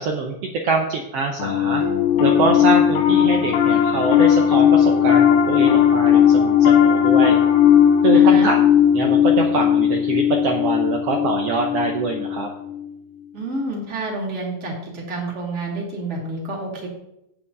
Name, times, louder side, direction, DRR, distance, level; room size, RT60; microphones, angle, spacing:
voice 1, 0.0-1.8 2.2-7.4 8.0-8.6 8.9-12.5, right 3 dB, 80° right, 2 dB, 1.3 m, -24 dB
Piano, 1.4-12.9, left 9 dB, 70° left, 2.0 m, -17 dB
Keyboard (musical), 1.8-4.6, left 10 dB, 40° left, 1.4 m, -27 dB
voice 2, 8.1-8.5 13.3-16.9, right 2 dB, 20° right, -3 dB, 2.4 m, -28 dB
8.7 x 7.0 x 5.3 m, 0.82 s
omnidirectional pair, 3.9 m